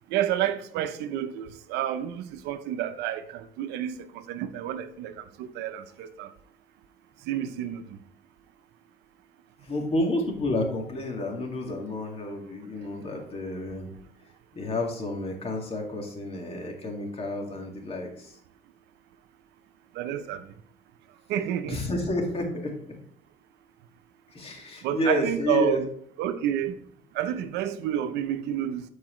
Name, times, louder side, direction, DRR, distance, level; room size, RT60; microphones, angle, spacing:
voice 1, 0.1-6.3 7.3-7.8 20.0-20.4 21.3-21.8 24.8-25.9 26.2-26.7 27.1-28.8, right 11 dB, 90° right, 0.7 m, -29 dB
voice 2, 9.6-13.9 14.5-18.4 21.7-22.8 24.3-25.8, left 2 dB, 35° left, 2.1 m, -30 dB
12.5 x 4.7 x 3.1 m
cardioid pair, 110°, 17 cm